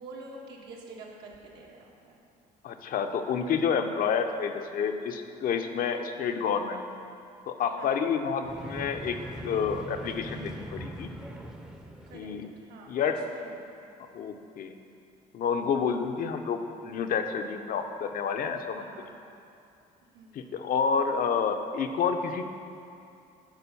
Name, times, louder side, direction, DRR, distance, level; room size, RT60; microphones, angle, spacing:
voice 1, 0.0-2.2 7.7-8.0 12.1-12.3 12.6-13.8 18.8-19.1 20.1-20.5, right 2 dB, 80° right, -2 dB, 1.6 m, -47 dB
voice 2, 2.6-6.8 7.5-9.2 9.4-11.1 12.1-12.5 12.9-13.2 14.1-14.7 15.3-18.9 20.3-22.4, left 6 dB, 55° left, 6 dB, 0.7 m, -29 dB
sound 1, 8.4-12.6, right 1 dB, 5° right, 0.6 m, -41 dB
9.0 x 4.9 x 6.9 m, 2.6 s
cardioid pair, 110°, 17 cm